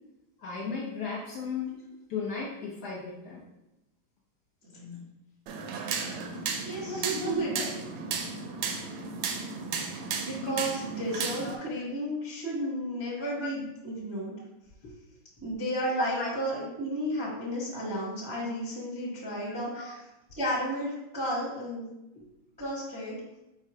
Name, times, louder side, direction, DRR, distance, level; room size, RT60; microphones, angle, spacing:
voice 1, 0.4-1.8 2.1-3.4 6.8-7.7 8.5-8.8 9.3-9.4 10.4-10.7 11.4-11.6 13.1-13.5 14.8-14.9 16.0-16.3 19.7-19.9 22.1-22.3, left 3 dB, 55° left, -5 dB, 1.4 m, -36 dB
voice 2, 4.7-5.0 6.6-7.5 10.2-14.3 15.4-20.0 20.4-21.9 22.6-23.2, equal, 20° right, -7 dB, 0.7 m, -33 dB
FX - mechero electrico, 5.5-11.6, right 5 dB, 75° right, 1.2 m, -34 dB
4.5 x 2.4 x 4.8 m, 0.93 s
omnidirectional pair, 2.4 m